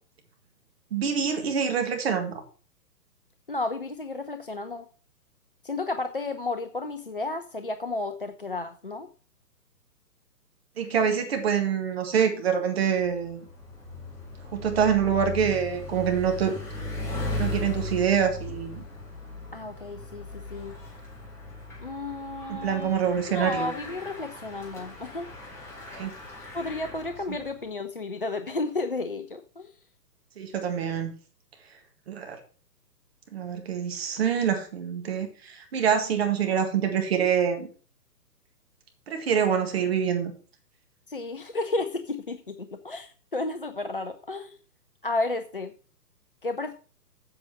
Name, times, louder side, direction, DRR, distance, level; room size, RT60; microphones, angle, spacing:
voice 1, 0.9-2.3 10.8-13.4 14.5-16.6 17.4-18.8 22.5-23.7 25.9-26.1 30.4-31.1 32.1-32.4 33.3-37.7 39.1-40.3, right 7 dB, 35° right, 5 dB, 1.8 m, -25 dB
voice 2, 3.5-4.9 5.6-9.1 19.5-20.7 21.8-22.9 23.3-25.3 26.5-29.7 41.1-44.6 45.0-45.7 46.4-46.7, left 2 dB, 35° left, 8 dB, 0.4 m, -32 dB
Bicycle, 13.0-27.6, left 2 dB, 5° left, 1.9 m, -38 dB
7.9 x 7.7 x 5.6 m, 0.40 s
figure-of-eight pair, 130°, 50 cm